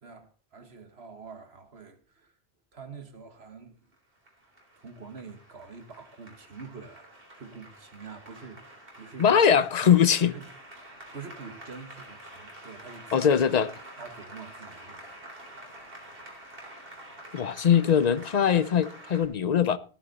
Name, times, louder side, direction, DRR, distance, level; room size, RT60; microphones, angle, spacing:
voice 1, 0.0-2.4 2.7-3.9 4.7-9.7 10.3-10.5 11.1-13.3 14.0-15.8, right 5 dB, 80° right, 2.0 m, -46 dB
Applause, 3.9-19.2, right 1 dB, 60° right, 3.9 m, -48 dB
voice 2, 9.2-10.3 13.1-13.7 17.3-19.8, left 8 dB, 45° left, 0.8 m, -21 dB
15.5 x 10.0 x 4.2 m
omnidirectional pair, 1.1 m